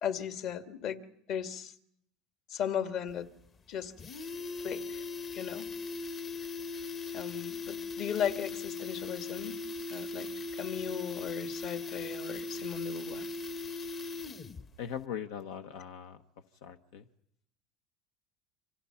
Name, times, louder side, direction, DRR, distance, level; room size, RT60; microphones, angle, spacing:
voice 1, 0.0-1.0 1.3-1.7 2.5-3.3 3.7-3.9 4.6-5.0 5.3-5.7 7.1-9.6 9.9-13.3, left 8 dB, 55° left, 2.0 m, -36 dB
sound 1, 3.1-3.2 3.5-3.6 3.8-14.7 15.0-15.1, left 4 dB, 30° left, 1.1 m, -39 dB
voice 2, 14.8-16.2 16.6-17.1, left 8 dB, 85° left, 1.1 m, -40 dB
29.5 x 26.0 x 5.8 m
supercardioid pair, 120°, 0 cm